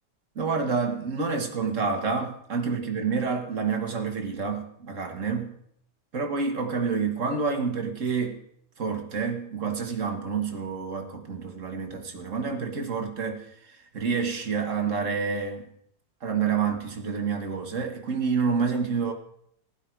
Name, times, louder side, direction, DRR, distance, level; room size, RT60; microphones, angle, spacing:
voice 1, 0.4-5.5 6.1-8.4 8.8-13.5 13.9-15.7 16.2-19.1, right 5 dB, 45° right, 4 dB, 1.8 m, -28 dB
15.5 x 11.5 x 4.6 m, 0.69 s
omnidirectional pair, 2.0 m